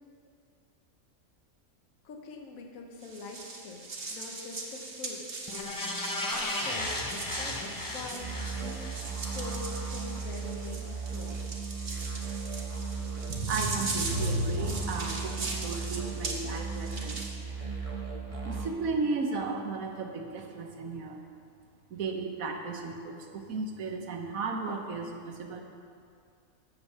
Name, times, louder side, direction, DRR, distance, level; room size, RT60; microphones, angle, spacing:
voice 1, 2.0-5.3 6.6-7.0 7.4-7.6 7.8-11.4, left 3 dB, 70° left, 2 dB, 1.4 m, -44 dB
sound 1, 3.0-17.3, right 3 dB, 45° right, 1.2 m, -40 dB
sound 2, 5.5-10.0 10.4-10.5, left 1 dB, 20° left, 0.6 m, -35 dB
sound 3, 8.2-18.7, right 5 dB, 30° right, 0.9 m, -36 dB
voice 2, 13.3-17.4 18.4-21.2 21.9-25.6, right 3 dB, 75° right, 3 dB, 1.4 m, -34 dB
8.5 x 6.8 x 7.2 m, 2.4 s
omnidirectional pair, 1.5 m